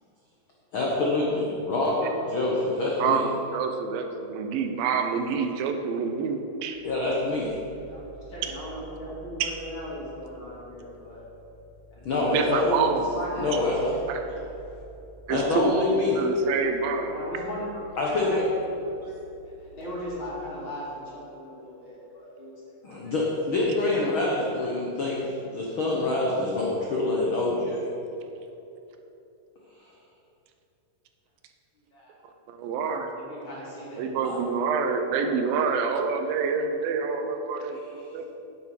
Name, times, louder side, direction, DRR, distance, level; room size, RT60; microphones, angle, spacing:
voice 1, 0.7-3.2 6.8-7.6 12.0-12.9 13.4-14.0 15.3-16.2 18.0-18.4 22.8-27.8 34.2-34.4, left 2 dB, 75° left, -3 dB, 1.1 m, -26 dB
voice 2, 3.5-6.8 9.4-9.5 12.1-13.1 14.1-14.2 15.3-15.7 16.1-17.2 32.5-33.1 34.0-38.3, right 5 dB, 85° right, 5 dB, 2.6 m, -27 dB
sound 1, 6.7-20.1, right 5 dB, 40° right, 3.2 m, -50 dB
voice 3, 7.7-11.2 11.9-12.0 13.1-13.5 14.2-14.6 17.0-19.0 19.4-22.6 31.8-32.2 33.1-34.1, equal, 40° left, -6 dB, 2.9 m, -38 dB
9.3 x 7.7 x 5.8 m, 2.9 s
omnidirectional pair, 4.0 m